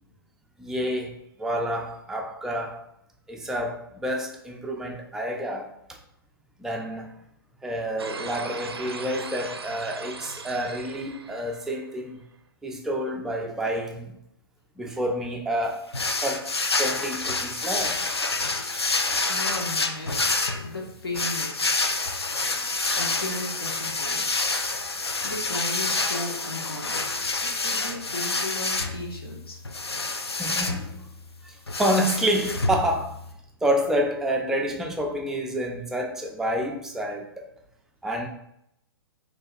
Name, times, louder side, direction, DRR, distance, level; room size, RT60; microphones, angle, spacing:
voice 1, 0.6-2.8 3.3-5.7 6.6-7.1 7.6-12.2 12.6-14.1 14.8-15.9 16.2-18.2 30.4-30.9 31.4-33.2 33.6-37.4 38.0-38.3, equal, 5° right, 0.3 m, -28 dB
sound 1, 8.0-12.1, right 4 dB, 80° right, 0.4 m, -39 dB
sound 2, 15.9-33.3, left 3 dB, 85° left, 0.4 m, -28 dB
voice 2, 19.3-21.7 22.8-24.4 25.2-27.0 27.4-29.6, left 1 dB, 70° left, 1.0 m, -35 dB
5.4 x 2.5 x 2.5 m
figure-of-eight pair, 115°, 13 cm